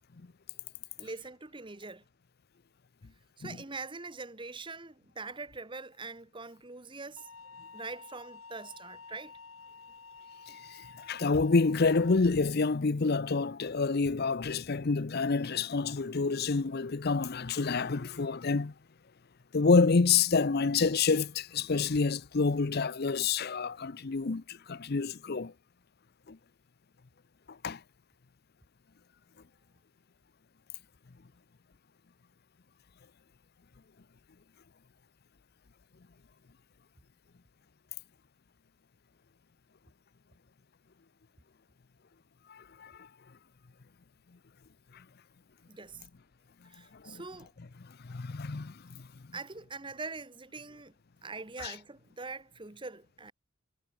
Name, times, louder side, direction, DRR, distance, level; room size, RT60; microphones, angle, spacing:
voice 1, 1.0-2.0 3.4-7.3 7.7-9.4 45.7-46.0 46.7-47.5 49.3-50.9 51.2-53.3, right 3 dB, 25° right, 1.3 m, -43 dB
sound 1, 7.2-12.2, left 4 dB, 85° left, 5.2 m, -50 dB
voice 2, 11.1-18.7 19.5-25.5 26.3-26.4 27.6-27.8 42.5-42.9 47.0-47.2 48.0-48.7 51.6-51.7, left 4 dB, 50° left, 0.6 m, -28 dB
head